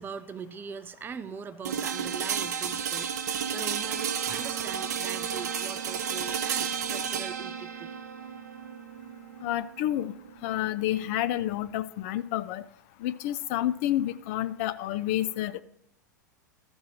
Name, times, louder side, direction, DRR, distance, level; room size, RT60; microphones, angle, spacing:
voice 1, 0.0-8.0, right 6 dB, 20° right, 12 dB, 0.6 m, -41 dB
sound 1, 1.6-11.5, right 7 dB, 60° right, 0.9 m, -32 dB
voice 2, 9.4-10.1 10.4-12.6 13.0-15.6, left 13 dB, 45° left, 13 dB, 0.4 m, -29 dB
13.0 x 4.3 x 6.4 m, 0.75 s
figure-of-eight pair, 90°, 10 cm